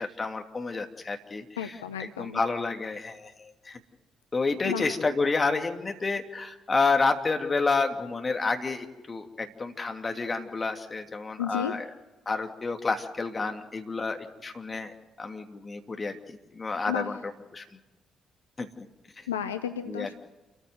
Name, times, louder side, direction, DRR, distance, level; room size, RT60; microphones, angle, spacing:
voice 1, 0.0-3.8 4.3-11.8 12.3-14.9 15.2-17.6 18.6-18.7 19.9-20.1, left 4 dB, 30° left, 5 dB, 2.8 m, -30 dB
voice 2, 1.6-2.4 4.6-4.9 11.4-11.7 16.9-17.1 19.3-20.1, left 9 dB, 80° left, 10 dB, 0.7 m, -32 dB
29.0 x 14.5 x 8.0 m, 1.1 s
figure-of-eight pair, 45°, 0 cm